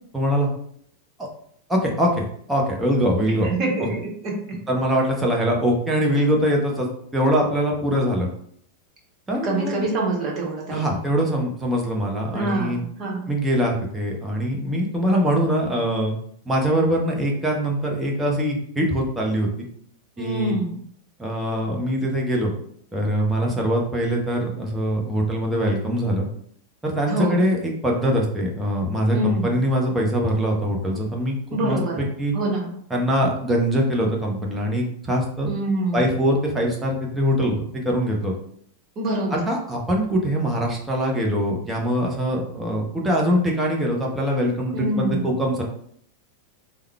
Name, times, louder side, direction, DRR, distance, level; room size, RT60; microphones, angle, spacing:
voice 1, 0.1-0.5 1.2-1.3 1.7-3.5 3.8-3.9 4.7-8.3 9.3-9.9 10.7-12.8 13.3-16.2 16.5-19.5 20.2-20.6 21.2-22.5 22.9-26.3 26.8-32.3 32.9-35.5 35.9-38.3 39.3-45.6, equal, 10° right, -1 dB, 0.8 m, -23 dB
voice 2, 3.4-3.9 4.2-4.3 9.4-11.0 12.3-13.3 20.2-20.7 27.1-27.4 29.1-29.5 31.5-32.0 32.3-32.7 35.4-36.1 39.0-39.5 44.7-45.2, right 1 dB, 35° right, -2 dB, 1.1 m, -25 dB
3.5 x 2.2 x 3.2 m, 0.65 s
figure-of-eight pair, 90°, 0 cm